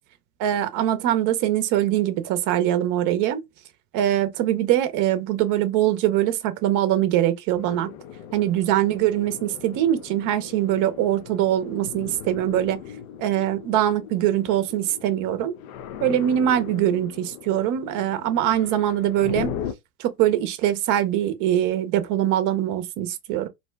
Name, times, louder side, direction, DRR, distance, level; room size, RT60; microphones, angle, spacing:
voice 1, 0.4-3.4 3.9-7.9 8.3-12.8 13.2-15.5 16.0-19.5 20.0-23.5, right 12 dB, 40° right, 0.7 m, -22 dB
sound 1, 7.5-19.7, left 9 dB, 65° left, 0.6 m, -38 dB
2.6 x 2.1 x 3.3 m
hypercardioid pair, 100°, 48 cm